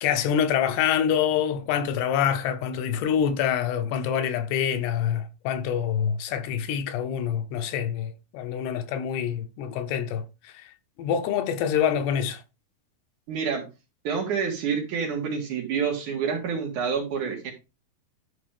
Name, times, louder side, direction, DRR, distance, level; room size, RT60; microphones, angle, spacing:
voice 1, 0.0-10.7 11.0-12.4, left 8 dB, 85° left, 3.0 m, -26 dB
voice 2, 13.3-13.7 14.0-17.5, right 6 dB, 55° right, 3.0 m, -28 dB
11.5 x 5.0 x 3.5 m
omnidirectional pair, 4.7 m